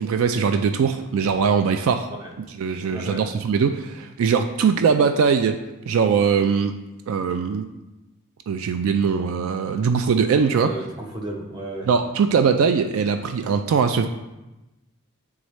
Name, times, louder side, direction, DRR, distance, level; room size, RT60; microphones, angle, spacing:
voice 1, 0.0-2.1 2.6-5.6 5.9-6.7 7.1-7.6 8.5-10.7 11.9-14.1, right 6 dB, 70° right, 8 dB, 0.3 m, -21 dB
voice 2, 2.6-3.3 10.5-11.9, right 1 dB, 20° right, -1 dB, 0.9 m, -34 dB
9.3 x 3.6 x 3.1 m, 1.0 s
head